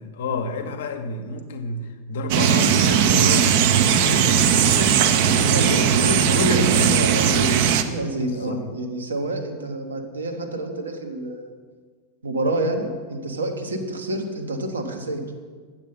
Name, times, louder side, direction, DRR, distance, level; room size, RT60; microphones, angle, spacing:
voice 1, 0.0-7.0 8.4-8.6, left 2 dB, 60° left, 7 dB, 0.9 m, -29 dB
sound 1, 2.3-7.8, right 8 dB, 50° right, 0.6 m, -18 dB
voice 2, 5.5-11.5 12.2-15.3, right 1 dB, 75° right, 3 dB, 1.1 m, -28 dB
8.2 x 7.0 x 5.6 m, 1.5 s
figure-of-eight pair, 90°, 0 cm